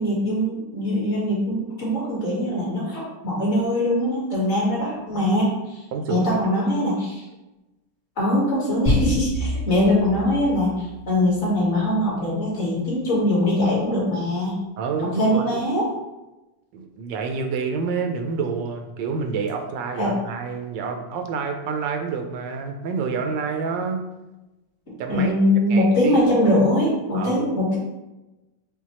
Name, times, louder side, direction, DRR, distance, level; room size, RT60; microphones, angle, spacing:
voice 1, 0.0-5.8 6.1-7.2 8.2-14.6 15.2-15.8 20.0-20.1 25.1-27.8, left 1 dB, 40° left, -6 dB, 1.7 m, -22 dB
voice 2, 5.9-6.6 14.8-15.7 16.7-24.0 25.0-25.3 25.7-26.2 27.1-27.3, right 5 dB, 90° right, 5 dB, 1.3 m, -28 dB
sound 1, 8.9-11.7, left 1 dB, 65° left, 2.2 m, -27 dB
5.7 x 2.2 x 2.9 m, 1.0 s
omnidirectional pair, 1.9 m